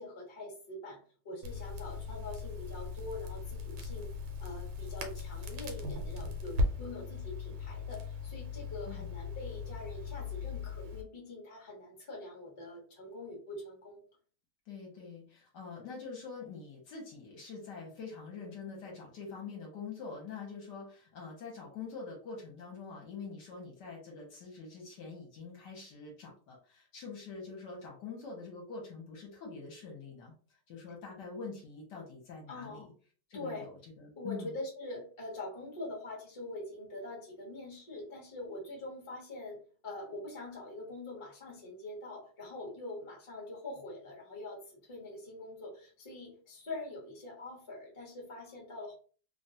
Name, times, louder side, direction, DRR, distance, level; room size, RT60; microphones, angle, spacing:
voice 1, 0.0-4.1 4.4-14.0 32.5-32.9 33.3-33.7 34.2-49.0, left 2 dB, 25° left, -4 dB, 0.6 m, -44 dB
Crackle, 1.4-11.0, left 3 dB, 90° right, 1.5 m, -38 dB
voice 2, 14.7-30.3 30.7-32.9 33.3-33.7 34.0-34.5, left 4 dB, 65° left, -1 dB, 1.2 m, -45 dB
3.3 x 2.2 x 2.7 m, 0.41 s
omnidirectional pair, 2.3 m